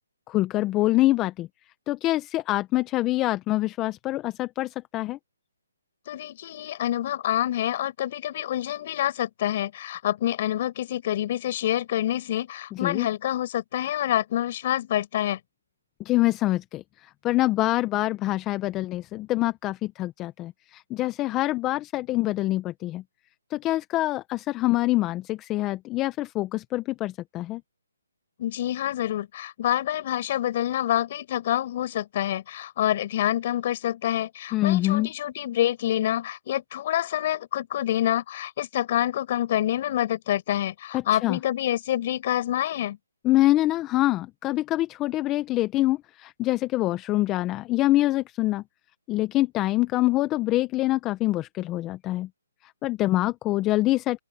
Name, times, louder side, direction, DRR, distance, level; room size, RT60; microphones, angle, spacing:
voice 1, 0.3-1.5 1.9-5.2 12.7-13.1 16.0-23.0 23.5-27.6 34.5-35.1 40.9-41.4 43.2-48.6 49.1-52.3 52.8-54.2, left 17 dB, 20° left, 1.0 m, -25 dB
voice 2, 6.1-15.4 28.4-43.0, left 12 dB, 40° left, 5.4 m, -27 dB
open air
hypercardioid pair, 155°, 0 cm